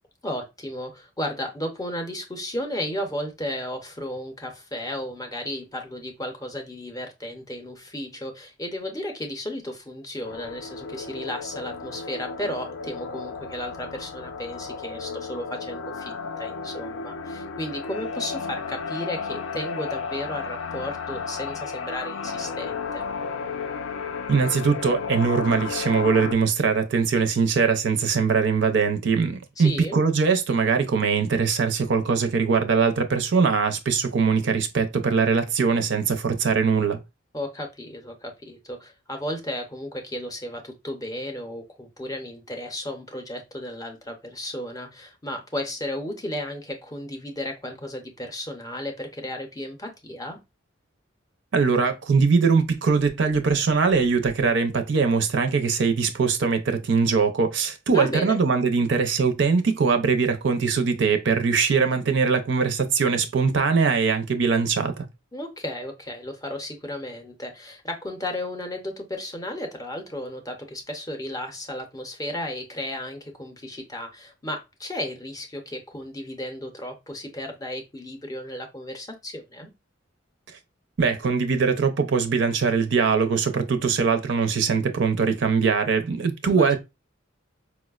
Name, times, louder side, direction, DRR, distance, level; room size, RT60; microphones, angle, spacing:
voice 1, 0.2-23.1 29.6-30.0 37.3-50.4 57.9-58.4 65.3-79.7 86.4-86.8, left 1 dB, 20° left, 0.5 m, -34 dB
sound 1, 10.2-26.3, left 5 dB, 85° left, 0.4 m, -33 dB
voice 2, 24.3-37.0 51.5-65.1 81.0-86.8, right 5 dB, 65° right, 0.5 m, -22 dB
4.6 x 2.1 x 2.3 m
head